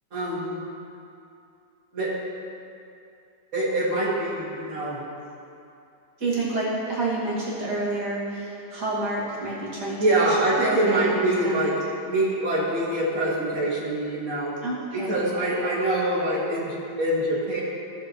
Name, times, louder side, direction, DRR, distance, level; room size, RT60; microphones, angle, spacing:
voice 1, 0.1-0.6 1.9-2.1 3.5-5.0 10.0-11.7 12.1-14.5 14.9-17.6, right 1 dB, 40° right, -9 dB, 2.3 m, -24 dB
voice 2, 6.2-11.7 14.6-15.2, right 2 dB, 55° right, -8 dB, 2.8 m, -29 dB
16.5 x 7.3 x 3.1 m, 2.6 s
omnidirectional pair, 2.2 m